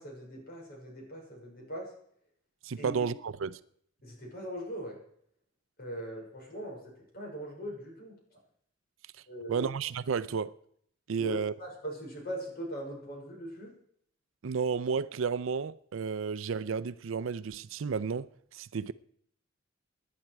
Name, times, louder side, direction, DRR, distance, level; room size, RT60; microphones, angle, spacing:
voice 1, 0.0-1.9 2.8-2.9 4.0-5.0 5.8-6.8 7.1-8.2 9.3-9.7 11.2-13.7, equal, 50° left, 5.4 m, -40 dB
voice 2, 2.6-3.6 9.5-10.5 11.1-11.5 14.4-18.9, right 5 dB, 70° right, 0.5 m, -32 dB
18.0 x 11.0 x 4.7 m
head